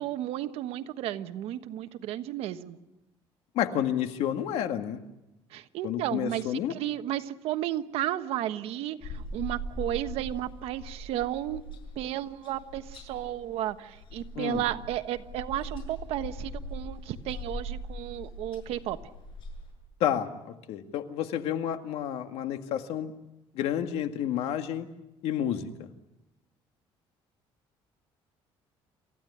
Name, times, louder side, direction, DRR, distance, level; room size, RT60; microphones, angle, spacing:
voice 1, 0.0-2.8 5.5-11.6 12.0-19.0, right 12 dB, 80° right, 9 dB, 1.3 m, -33 dB
voice 2, 3.6-5.0 5.8-6.7 14.4-14.6 20.0-23.1 23.5-24.9 25.2-25.9, left 10 dB, 85° left, 7 dB, 1.9 m, -30 dB
sound 1, 9.0-19.7, equal, 55° left, 7.5 m, -41 dB
28.0 x 15.0 x 9.8 m, 0.95 s
cardioid pair, 140°, 10 cm